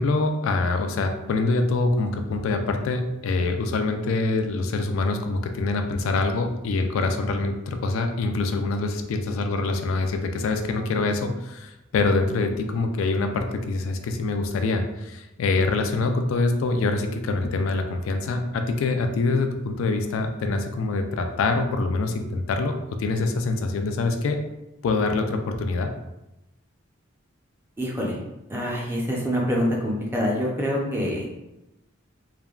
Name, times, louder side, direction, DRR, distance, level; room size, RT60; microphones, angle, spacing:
voice 1, 0.0-24.4 24.8-25.9, left 3 dB, 75° left, 5 dB, 0.3 m, -25 dB
voice 2, 27.8-28.2 28.5-31.3, equal, 10° right, -3 dB, 0.5 m, -25 dB
3.3 x 2.1 x 2.3 m, 0.93 s
head